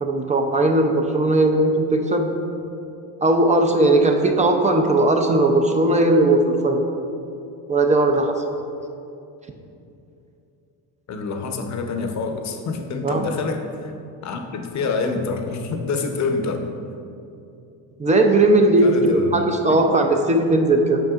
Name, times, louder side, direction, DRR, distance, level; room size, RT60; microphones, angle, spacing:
voice 1, 0.0-2.3 3.2-6.8 7.7-8.4 13.0-13.2 18.0-21.0, right 2 dB, 15° right, 3 dB, 0.5 m, -18 dB
voice 2, 11.1-13.9 14.2-16.7 18.8-19.9, left 4 dB, 40° left, 5 dB, 0.7 m, -27 dB
7.7 x 5.5 x 2.4 m, 2.7 s
supercardioid pair, 90°, 42 cm